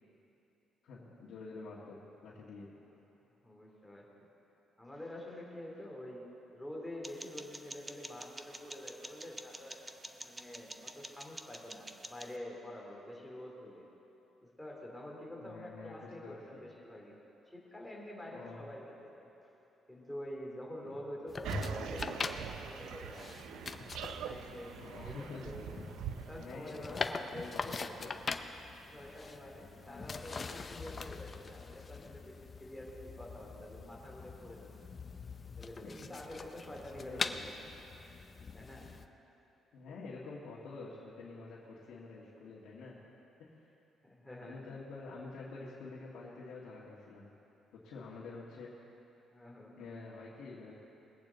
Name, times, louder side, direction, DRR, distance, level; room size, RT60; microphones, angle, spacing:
voice 1, 0.8-2.7 15.4-16.6 18.3-18.7 20.8-21.0 24.8-25.5 26.2-28.2 35.8-36.1 36.9-37.4 39.7-43.0 43.4-43.7 44.4-47.3 47.7-48.7 49.8-50.7, left 3 dB, 80° left, -7 dB, 1.8 m, -48 dB
voice 2, 3.4-4.1 4.8-6.3 6.5-9.8 10.2-13.8 14.4-17.2 17.5-19.3 19.9-23.2 24.2-25.8 26.3-28.0 28.9-34.7 35.6-37.5 38.5-38.9 44.0-44.6 49.3-49.8, left 1 dB, 5° left, -3 dB, 2.7 m, -47 dB
sound 1, 7.0-12.4, right 1 dB, 15° right, 0.6 m, -49 dB
sound 2, 21.3-39.1, left 4 dB, 30° left, 0.6 m, -43 dB
sound 3, 21.4-26.5, right 8 dB, 85° right, 0.5 m, -43 dB
21.5 x 8.6 x 4.0 m, 3.0 s
cardioid pair, 110°, 0 cm